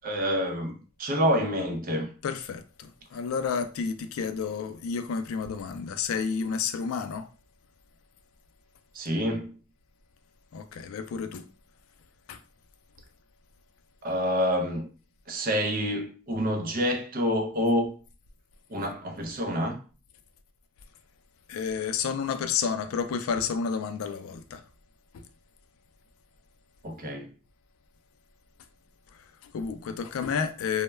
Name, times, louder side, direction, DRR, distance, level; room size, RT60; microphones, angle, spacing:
voice 1, 0.0-2.1 8.9-9.6 14.0-14.9 15.3-17.9 18.7-19.8 26.8-27.3, equal, 45° right, 0.5 m, -27 dB
voice 2, 2.2-7.3 10.5-11.5 12.3-12.4 21.5-24.6 25.1-25.3 29.1-30.8, left 6 dB, 90° left, 0.3 m, -31 dB
2.1 x 2.0 x 3.2 m
head